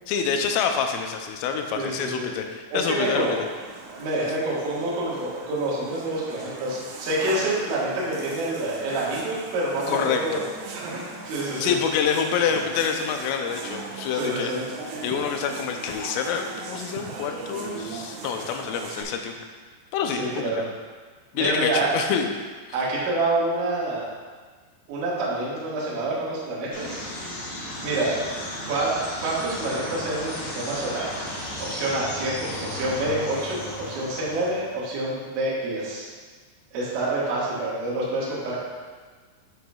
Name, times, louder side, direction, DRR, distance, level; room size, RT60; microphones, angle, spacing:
voice 1, 0.1-3.5 9.9-10.4 11.6-14.5 15.0-19.4 19.9-20.5 21.3-22.3, left 7 dB, 90° left, 4 dB, 3.3 m, -27 dB
voice 2, 1.7-2.3 2.7-3.3 4.0-10.5 10.7-11.8 14.1-14.6 20.1-20.7 21.4-21.9 22.7-24.1 24.9-27.0 27.8-28.1 28.7-28.9 29.2-31.1 31.6-36.1 36.7-38.6, right 2 dB, 75° right, -8 dB, 4.0 m, -27 dB
sound 1, 2.7-19.0, right 4 dB, 90° right, 3.5 m, -39 dB
sound 2, 26.7-34.8, left 1 dB, 50° left, 2.1 m, -35 dB
11.0 x 5.9 x 2.3 m, 1.5 s
omnidirectional pair, 5.6 m